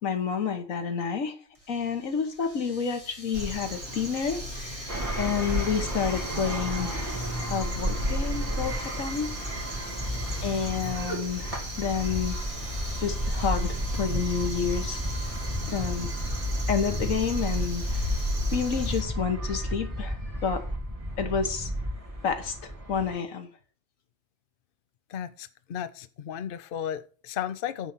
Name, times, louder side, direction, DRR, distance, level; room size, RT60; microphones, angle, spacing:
voice 1, 0.0-1.4 1.7-7.1 7.5-9.7 10.4-12.4 13.0-15.0 15.3-15.4 15.7-16.1 16.7-18.1 18.5-20.6 21.2-21.7 22.2-23.5, left 6 dB, 90° left, 1.7 m, -30 dB
Domestic sounds home sounds, 1.5-18.4, left 1 dB, 25° left, 2.3 m, -49 dB
Crow, 3.3-19.0, equal, 50° right, 2.8 m, -34 dB
sound 1, 4.9-23.2, equal, 25° right, 2.4 m, -33 dB
voice 2, 25.1-27.9, left 9 dB, 55° left, 0.7 m, -34 dB
10.0 x 4.0 x 7.3 m
omnidirectional pair, 1.3 m